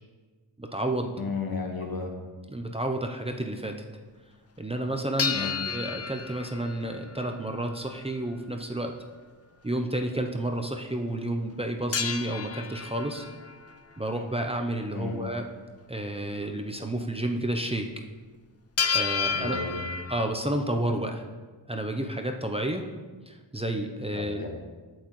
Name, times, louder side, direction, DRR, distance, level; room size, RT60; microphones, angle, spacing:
voice 1, 0.6-1.1 2.5-3.8 4.6-8.9 9.6-13.3 14.0-15.4 15.9-17.9 18.9-19.6 20.1-21.3 21.7-22.8 23.3-24.4, right 1 dB, 15° right, 3 dB, 0.6 m, -30 dB
voice 2, 1.2-2.1 5.3-5.6 14.9-15.2 19.3-19.8 24.1-24.5, left 4 dB, 50° left, 1 dB, 1.6 m, -33 dB
sound 1, 5.2-7.6 11.9-13.8 18.8-20.3, left 6 dB, 30° left, 0.6 m, -31 dB
8.4 x 8.0 x 3.1 m, 1.3 s
cardioid pair, 70°, 47 cm